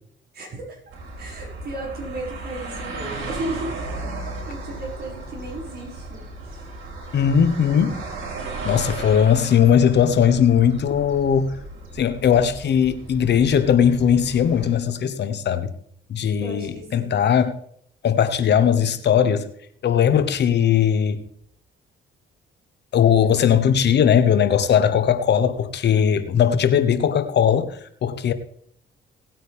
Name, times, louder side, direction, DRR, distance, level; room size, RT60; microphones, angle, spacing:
voice 1, 0.3-0.8 1.2-3.8 4.2-6.6 16.4-17.2, right 2 dB, 55° right, 6.3 m, -35 dB
sound 1, 0.9-14.7, right 2 dB, 85° right, 4.8 m, -35 dB
voice 2, 7.1-8.0 8.6-11.6 11.9-15.7 16.1-17.6 18.0-19.5 19.8-21.2 22.9-28.3, left 8 dB, 60° left, 1.1 m, -19 dB
18.0 x 9.1 x 3.5 m
cardioid pair, 90°, 20 cm